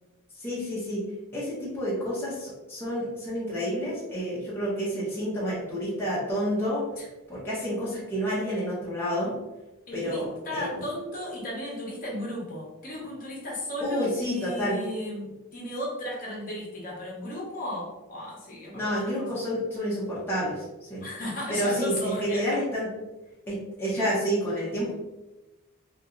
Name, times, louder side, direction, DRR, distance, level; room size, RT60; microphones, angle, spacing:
voice 1, 0.4-1.0 1.3-6.8 7.3-9.3 9.9-10.7 13.8-14.8 18.7-21.0 21.5-22.9 23.5-24.9, equal, 10° left, -9 dB, 0.7 m, -29 dB
voice 2, 9.9-19.5 21.0-22.4, left 1 dB, 40° left, -4 dB, 1.0 m, -35 dB
2.8 x 2.8 x 2.4 m, 1.0 s
head